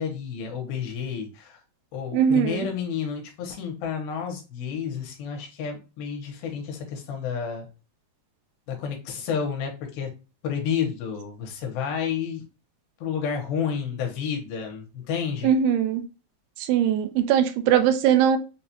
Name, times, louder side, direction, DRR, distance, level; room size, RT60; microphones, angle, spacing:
voice 1, 0.0-1.6 1.9-7.7 8.7-10.1 10.4-12.4 13.0-15.5, left 7 dB, 75° left, 2 dB, 2.7 m, -30 dB
voice 2, 2.1-2.7 15.4-16.0 16.7-18.4, right 9 dB, 90° right, 8 dB, 2.6 m, -20 dB
6.5 x 2.3 x 2.7 m, 0.31 s
omnidirectional pair, 4.5 m